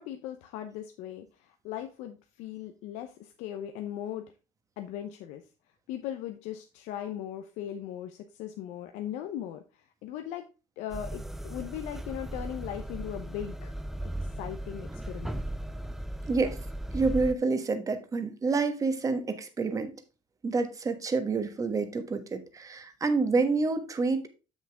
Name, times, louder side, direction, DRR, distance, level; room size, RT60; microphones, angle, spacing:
voice 1, 0.0-4.2 4.8-5.4 5.9-10.5 10.8-13.8 14.0-15.4, left 11 dB, 75° left, 0.7 m, -39 dB
sound 1, 10.9-17.3, right 1 dB, 5° right, 0.5 m, -37 dB
voice 2, 16.9-19.9 20.4-24.3, right 4 dB, 25° right, 1.3 m, -28 dB
7.3 x 6.4 x 3.5 m
supercardioid pair, 100°, 12 cm